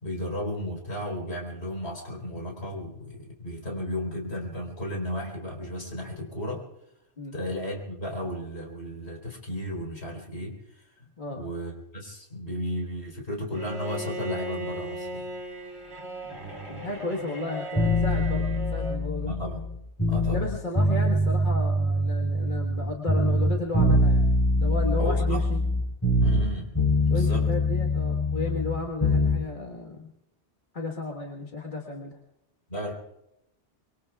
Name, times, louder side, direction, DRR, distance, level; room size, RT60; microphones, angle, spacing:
voice 1, 0.0-6.6 7.3-15.3 19.2-19.6 20.1-20.4 25.0-25.4 26.2-26.7 27.1-27.5 32.7-32.9, equal, 65° left, 0 dB, 4.4 m, -34 dB
voice 2, 11.2-11.5 16.2-16.4 16.7-19.3 20.3-25.6 27.1-30.1 30.7-32.2, left 2 dB, 45° left, 0 dB, 1.6 m, -33 dB
Bowed string instrument, 13.5-19.1, right 1 dB, 65° right, 2.4 m, -37 dB
sound 1, 17.8-20.4 20.8-22.8 23.1-26.5 26.8-29.4, left 1 dB, 15° left, 3.9 m, -23 dB
25.5 x 23.0 x 2.4 m, 0.84 s
omnidirectional pair, 1.2 m